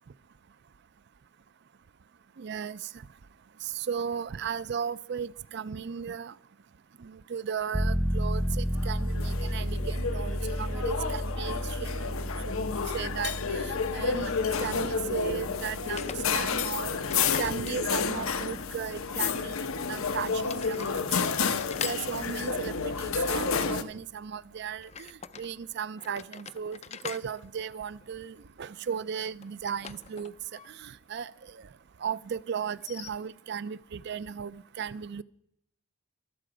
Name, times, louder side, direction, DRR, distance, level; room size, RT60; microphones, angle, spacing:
voice 1, 2.4-2.8 3.6-6.3 7.0-12.6 12.9-14.3 14.6-21.5 21.8-25.1 25.4-26.8 27.0-30.3 30.8-31.3 32.0-35.2, right 7 dB, 55° right, 0.4 m, -36 dB
sound 1, 7.7-20.2 20.6-20.7, equal, 10° right, 0.7 m, -33 dB
sound 2, 8.7-23.8, left 5 dB, 85° left, 0.9 m, -31 dB
sound 3, 13.7-13.8 15.8-16.5 17.1-18.4 19.4-20.1 20.4-20.9 21.6-22.7 24.8-25.5 26.0-28.4 29.4-30.7 30.9-31.0 32.7-33.1, left 8 dB, 30° left, 0.4 m, -43 dB
23.0 x 7.6 x 5.0 m
head